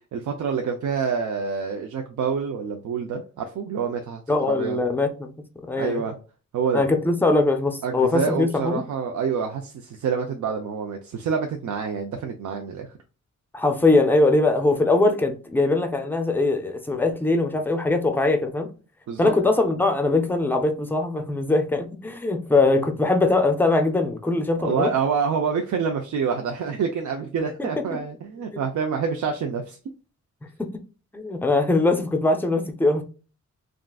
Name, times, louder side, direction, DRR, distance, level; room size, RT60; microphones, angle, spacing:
voice 1, 0.1-4.2 4.5-4.8 5.8-6.1 6.5-6.8 7.8-12.9 19.1-19.3 24.6-29.8, right 6 dB, 80° right, 0.5 m, -27 dB
voice 2, 4.3-5.3 5.7-6.0 6.7-8.8 13.5-18.7 19.2-24.9 27.6-27.8 28.5-28.6 30.6-30.7 31.1-33.0, left 2 dB, 5° left, 0.4 m, -21 dB
3.6 x 2.4 x 2.2 m
wide cardioid pair, 170°, 29 cm